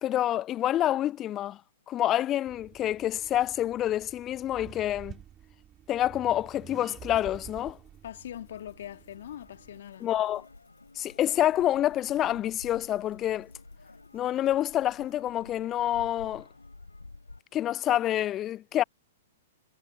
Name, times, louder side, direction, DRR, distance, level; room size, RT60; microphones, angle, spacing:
voice 1, 0.0-1.6 1.9-5.2 5.9-7.8 10.0-10.5 11.0-13.5 14.1-16.5 17.5-18.8, left 12 dB, 25° left, 0.3 m, -27 dB
Accelerating revving vroom, 2.5-9.8, right 10 dB, 20° right, 3.3 m, -49 dB
sound 1, 6.2-15.2, left 26 dB, 40° left, 5.7 m, -67 dB
voice 2, 8.0-10.1, left 11 dB, 55° left, 1.8 m, -42 dB
sound 2, 8.2-17.4, left 3 dB, 85° left, 4.3 m, -51 dB
figure-of-eight pair, 110°, 0 cm